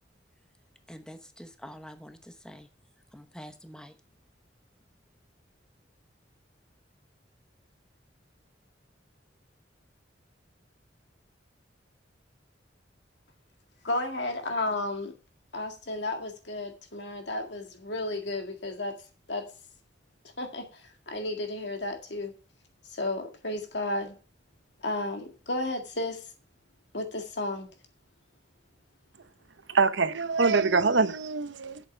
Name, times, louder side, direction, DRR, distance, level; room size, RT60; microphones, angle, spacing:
voice 1, 0.9-2.7 3.1-4.0, equal, 5° left, 0.9 m, -46 dB
voice 2, 13.8-15.1 15.5-18.9 19.3-19.4 20.4-20.8 21.1-22.3 22.9-24.2 24.8-26.2 26.9-27.7, left 2 dB, 65° left, 1.9 m, -32 dB
voice 3, 29.7-31.8, right 4 dB, 75° right, 0.8 m, -24 dB
7.9 x 7.5 x 6.9 m
head